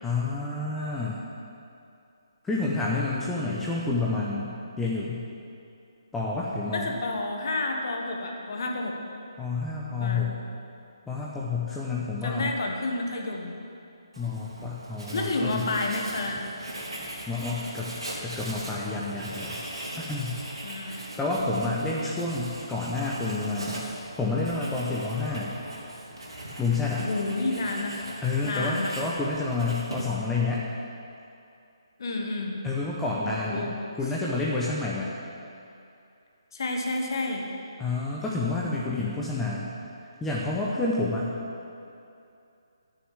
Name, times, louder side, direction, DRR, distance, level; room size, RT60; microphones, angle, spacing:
voice 1, 0.0-1.2 2.4-5.2 6.1-6.9 9.4-10.3 11.1-12.5 14.2-15.7 17.3-17.9 18.2-19.6 20.1-20.4 20.8-23.8 24.2-25.6 26.6-27.0 28.2-30.6 32.6-33.7 34.0-35.1 37.8-39.7 40.2-41.3, left 3 dB, 5° left, -6 dB, 0.9 m, -29 dB
voice 2, 6.7-9.0 10.0-10.3 12.2-13.5 15.1-16.5 20.6-21.1 27.0-28.0 28.4-29.0 32.0-32.6 33.4-33.7 36.5-37.4, left 2 dB, 50° left, 1 dB, 1.5 m, -30 dB
Writing, 14.1-30.3, right 1 dB, 70° right, 2.7 m, -40 dB
11.0 x 6.5 x 7.4 m, 2.6 s
figure-of-eight pair, 145°, 3 cm